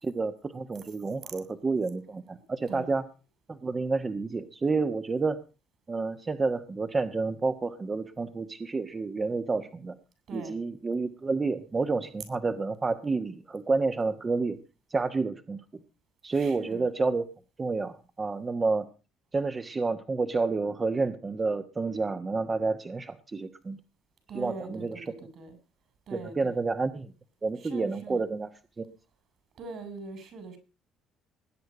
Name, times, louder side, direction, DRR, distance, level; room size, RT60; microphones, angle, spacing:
voice 1, 0.0-3.0 3.5-5.4 5.9-10.0 10.3-14.6 14.9-15.6 16.2-17.2 17.6-18.9 19.3-23.8 24.3-25.1 26.1-27.1 27.4-28.5 28.8-28.9, right 3 dB, 30° right, 1.3 m, -29 dB
voice 2, 16.3-16.9 24.3-25.6 26.1-26.6 27.6-28.2 29.5-30.6, right 4 dB, 60° right, 6.3 m, -42 dB
20.5 x 9.4 x 5.0 m
supercardioid pair, 65°, 0 cm